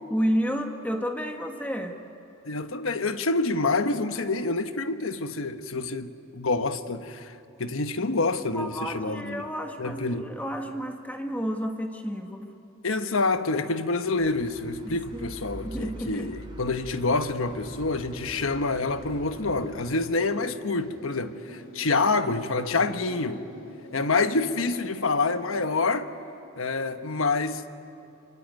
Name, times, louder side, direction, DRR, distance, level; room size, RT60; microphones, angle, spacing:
voice 1, 0.1-2.0 8.5-12.5 14.8-15.3 15.6-16.3, equal, 5° left, 1.5 m, -31 dB
voice 2, 2.4-9.4 9.8-10.3 12.8-23.4 23.9-26.1 26.6-27.7, left 3 dB, 80° left, 1.2 m, -27 dB
sound 1, 14.2-20.0, right 1 dB, 20° right, 4.4 m, -44 dB
sound 2, 17.0-25.8, equal, 65° left, 2.9 m, -46 dB
26.5 x 24.0 x 9.4 m
head